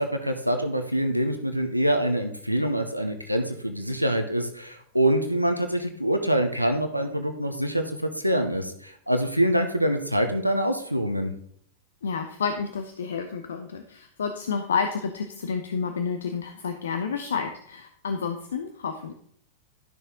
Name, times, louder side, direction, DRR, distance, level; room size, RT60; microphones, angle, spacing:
voice 1, 0.0-11.3, right 1 dB, 90° right, 6 dB, 0.9 m, -25 dB
voice 2, 12.0-19.1, left 5 dB, 65° left, 7 dB, 0.7 m, -30 dB
12.0 x 6.4 x 3.7 m, 0.63 s
figure-of-eight pair, 90°, 0 cm